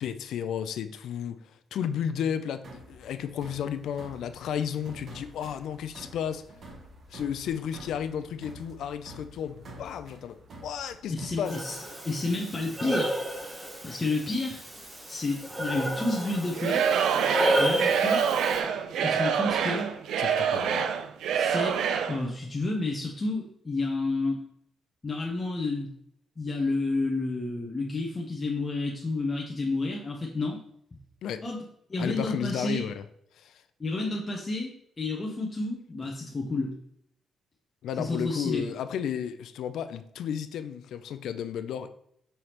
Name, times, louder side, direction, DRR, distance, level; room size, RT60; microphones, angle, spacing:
voice 1, 0.0-6.5 7.1-11.6 20.2-20.9 31.2-31.4 32.0-33.0 33.3-33.6 37.8-41.9, left 8 dB, 80° left, 0.3 m, -33 dB
sound 1, 2.6-11.4, right 1 dB, 45° right, 0.9 m, -48 dB
voice 2, 11.1-11.8 12.0-13.2 13.6-14.6 15.1-16.8 17.6-18.2 19.0-19.9 21.3-21.8 22.1-24.4 25.0-25.9 26.4-30.6 31.4-31.6 31.9-32.9 33.8-36.7 38.0-38.6, left 2 dB, 20° left, 0.6 m, -30 dB
Breathing, 11.5-18.6, right 1 dB, 15° right, 0.8 m, -31 dB
Singing / Crowd, 16.5-22.2, right 7 dB, 85° right, 0.4 m, -26 dB
5.4 x 3.2 x 2.9 m
cardioid pair, 135°, 0 cm